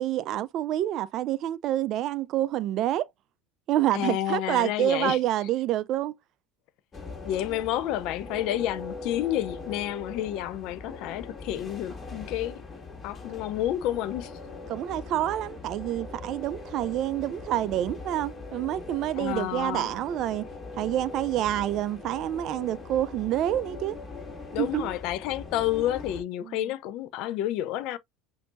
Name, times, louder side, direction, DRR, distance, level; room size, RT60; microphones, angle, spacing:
voice 1, 0.0-3.1 3.7-6.1 14.7-20.5 20.8-24.0 24.6-24.9 26.5-26.6, right 13 dB, 50° right, 0.4 m, -27 dB
voice 2, 3.9-5.2 7.2-12.6 13.0-14.3 19.2-19.9 24.5-28.0, left 12 dB, 60° left, 0.5 m, -30 dB
sound 1, 6.9-26.2, left 3 dB, 25° left, 2.0 m, -41 dB
5.9 x 2.6 x 2.5 m
hypercardioid pair, 75°, 0 cm